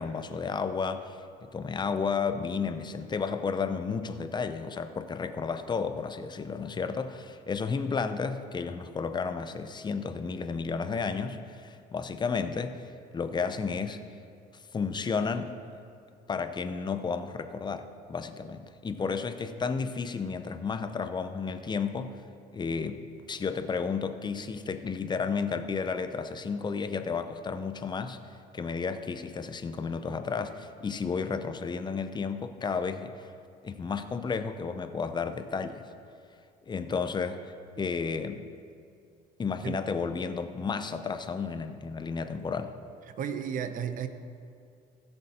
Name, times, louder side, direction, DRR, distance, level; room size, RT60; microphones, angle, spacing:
voice 1, 0.0-14.0 14.7-15.6 16.3-22.2 22.5-28.2 28.5-33.3 33.6-35.9 36.7-37.5 37.8-38.5 39.4-42.7, left 5 dB, 25° left, 9 dB, 0.7 m, -32 dB
voice 2, 43.2-44.1, right 8 dB, 55° right, 10 dB, 0.8 m, -33 dB
15.5 x 7.0 x 4.3 m, 2.4 s
cardioid pair, 110°, 17 cm